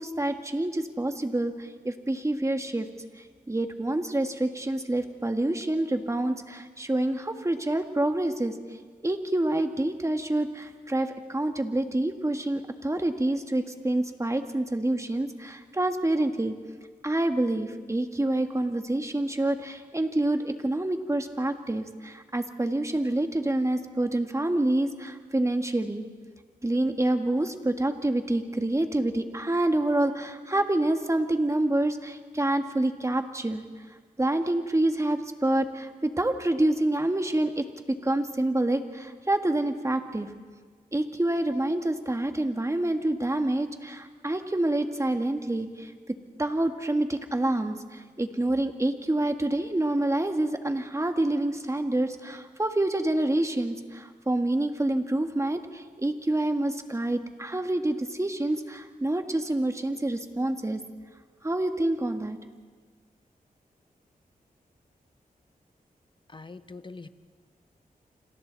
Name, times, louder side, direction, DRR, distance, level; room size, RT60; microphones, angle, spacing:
voice 1, 0.0-2.9 3.2-8.5 9.0-16.5 17.0-26.1 26.6-33.6 34.2-40.3 40.9-45.9 46.4-60.8 61.4-62.4, right 1 dB, 20° right, 6 dB, 1.9 m, -27 dB
voice 2, 66.3-67.1, left 3 dB, 30° left, 11 dB, 1.0 m, -43 dB
29.5 x 26.5 x 4.1 m, 1.5 s
cardioid pair, 65°, 15 cm